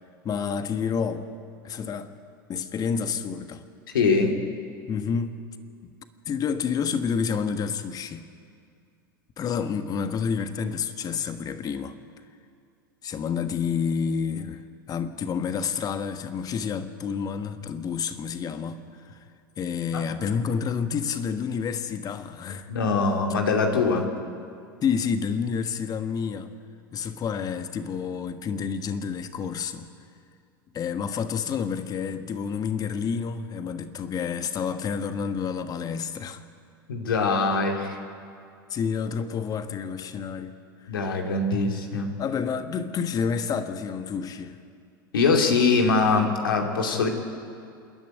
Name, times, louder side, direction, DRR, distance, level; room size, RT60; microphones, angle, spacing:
voice 1, 0.2-1.3 1.6-2.1 2.5-3.6 4.9-5.4 5.8-5.9 6.3-8.2 9.4-12.0 13.0-18.8 19.1-19.2 19.6-22.7 24.8-26.5 26.9-29.9 30.7-36.4 38.7-40.6 42.2-44.6, left 6 dB, 35° left, 9 dB, 1.4 m, -29 dB
voice 2, 3.9-4.3 19.9-20.0 22.7-24.1 36.9-38.0 40.9-42.1 45.1-47.1, left 4 dB, 80° left, 3 dB, 2.5 m, -22 dB
27.0 x 10.5 x 9.4 m, 2.4 s
hypercardioid pair, 90°, 11 cm